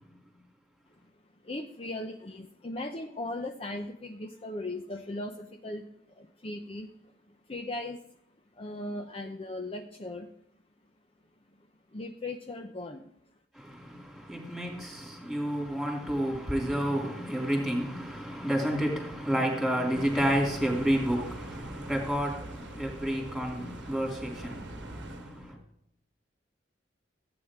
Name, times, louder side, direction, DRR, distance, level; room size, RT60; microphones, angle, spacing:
voice 1, 1.4-8.0 8.6-10.3 11.6-13.1, left 2 dB, 35° left, 0.7 m, -38 dB
voice 2, 13.5-25.6, equal, ahead, 3.0 m, -30 dB
sound 1, 19.9-25.5, right 2 dB, 80° right, 1.2 m, -44 dB
15.0 x 8.9 x 3.7 m
head